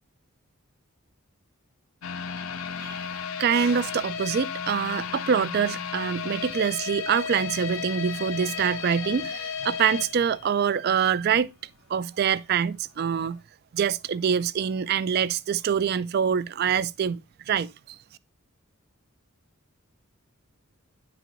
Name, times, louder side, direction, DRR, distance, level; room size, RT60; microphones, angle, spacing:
sound 1, 2.0-11.0 11.3-11.4 11.9-12.0, left 7 dB, 70° left, 0.5 m, -34 dB
voice 1, 3.4-11.5 11.9-13.4 13.7-17.2 17.5-18.0, right 7 dB, 45° right, 0.3 m, -25 dB
10.0 x 3.9 x 3.0 m
head